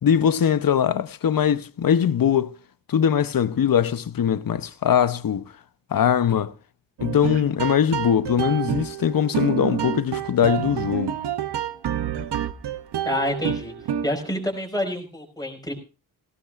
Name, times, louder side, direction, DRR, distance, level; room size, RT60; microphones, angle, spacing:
voice 1, 0.0-2.6 2.9-5.4 5.9-6.5 7.0-11.1, left 8 dB, 60° left, 0.8 m, -21 dB
sound 1, 7.0-14.3, right 9 dB, 85° right, 0.8 m, -28 dB
voice 2, 13.0-13.7 14.0-15.7, left 1 dB, 10° left, 5.0 m, -27 dB
17.5 x 16.5 x 2.5 m
cardioid pair, 75°, 39 cm